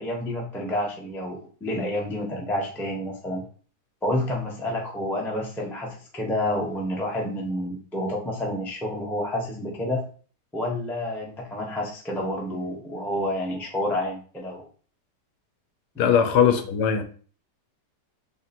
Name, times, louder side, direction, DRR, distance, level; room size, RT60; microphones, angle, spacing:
voice 1, 0.0-3.4 4.0-10.0 10.5-14.7 15.9-16.1, left 1 dB, 5° left, 0.4 m, -29 dB
voice 2, 16.0-17.0, left 8 dB, 75° left, 1.1 m, -20 dB
2.9 x 2.8 x 4.1 m
omnidirectional pair, 1.8 m